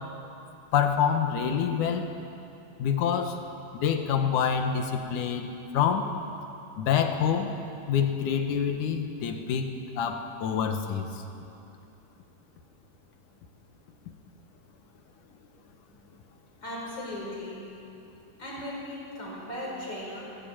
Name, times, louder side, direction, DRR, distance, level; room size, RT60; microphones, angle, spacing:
voice 1, 0.7-2.1 2.8-3.4 3.7-6.1 6.8-7.5 7.9-9.7 10.0-11.1, left 7 dB, 70° left, 6 dB, 2.7 m, -26 dB
voice 2, 16.6-17.7 18.4-20.2, left 1 dB, 30° left, -4 dB, 6.0 m, -37 dB
20.5 x 15.0 x 8.8 m, 2.7 s
omnidirectional pair, 3.8 m